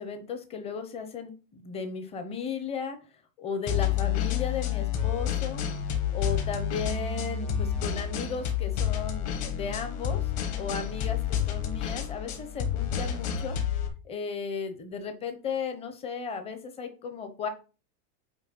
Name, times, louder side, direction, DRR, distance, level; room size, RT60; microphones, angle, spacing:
voice 1, 0.0-3.0 3.4-5.6 6.1-10.3 10.6-17.5, left 5 dB, 15° left, 7 dB, 0.8 m, -35 dB
sound 1, 3.7-13.9, left 9 dB, 40° left, 1.6 m, -29 dB
9.0 x 3.2 x 5.8 m, 0.34 s
supercardioid pair, 175°, 43 cm